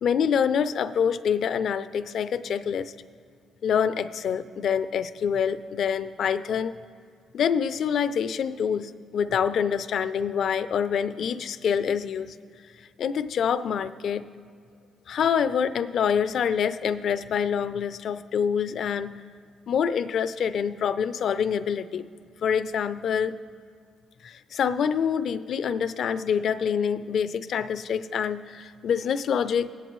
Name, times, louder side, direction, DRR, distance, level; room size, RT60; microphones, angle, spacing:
voice 1, 0.0-2.9 3.6-6.7 7.3-12.4 13.0-14.2 15.1-19.1 19.7-22.0 22.4-23.4 24.2-29.7, left 7 dB, 65° left, 13 dB, 0.4 m, -26 dB
19.0 x 8.8 x 3.1 m, 2.2 s
cardioid pair, 90°, 0 cm